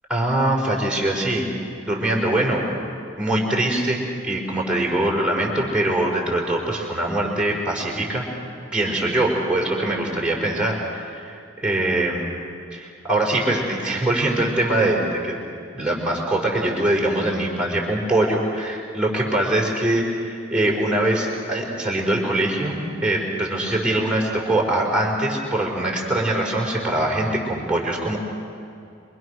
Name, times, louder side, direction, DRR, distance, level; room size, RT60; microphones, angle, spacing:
voice 1, 0.1-1.5 1.9-2.6 3.2-8.3 8.7-11.3 11.6-12.2 12.7-15.4 15.8-28.2, right 1 dB, 5° right, -3 dB, 4.8 m, -23 dB
27.0 x 24.0 x 6.4 m, 2.5 s
head